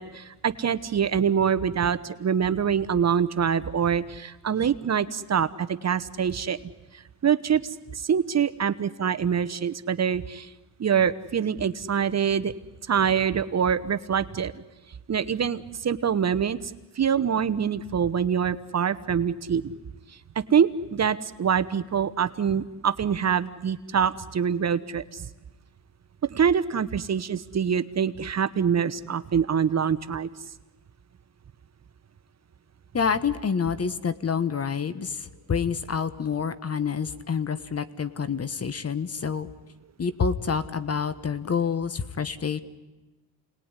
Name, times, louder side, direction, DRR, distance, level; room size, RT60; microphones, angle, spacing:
voice 1, 0.0-6.6 7.2-10.5 10.8-12.5 12.9-14.6 15.1-19.7 20.4-25.3 26.3-30.3, right 7 dB, 40° right, 13 dB, 1.0 m, -25 dB
voice 2, 32.9-39.5 40.0-42.6, left 6 dB, 35° left, 13 dB, 1.4 m, -28 dB
28.0 x 20.0 x 9.9 m, 1.1 s
cardioid pair, 80°, 42 cm